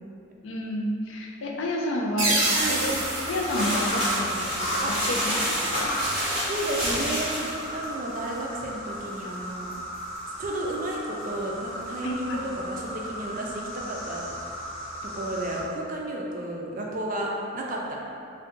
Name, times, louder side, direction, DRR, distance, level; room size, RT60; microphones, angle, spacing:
voice 1, 0.4-3.0 3.3-6.4 12.0-12.4, left 1 dB, 65° left, 0 dB, 0.4 m, -30 dB
sound 1, 2.2-4.7, right 2 dB, 80° right, 0.6 m, -28 dB
sound 2, 2.5-15.6, equal, 35° left, 0.7 m, -34 dB
sound 3, 2.8-7.6, equal, 5° right, 0.8 m, -30 dB
voice 2, 6.5-9.7 10.4-14.2 15.1-18.0, right 1 dB, 40° right, -2 dB, 0.4 m, -32 dB
2.6 x 2.2 x 3.6 m, 2.7 s
head